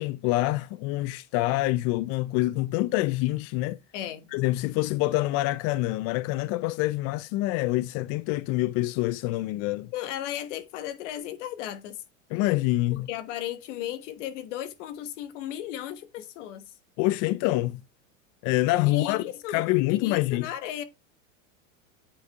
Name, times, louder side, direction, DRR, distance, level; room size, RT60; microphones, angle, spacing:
voice 1, 0.0-3.8 4.3-9.9 12.3-13.1 17.0-17.8 18.4-20.5, left 18 dB, 45° left, 0.4 m, -26 dB
voice 2, 3.9-4.3 9.9-12.0 12.9-16.7 18.8-20.8, left 11 dB, 65° left, 1.3 m, -35 dB
8.5 x 5.3 x 3.4 m
supercardioid pair, 115°, 38 cm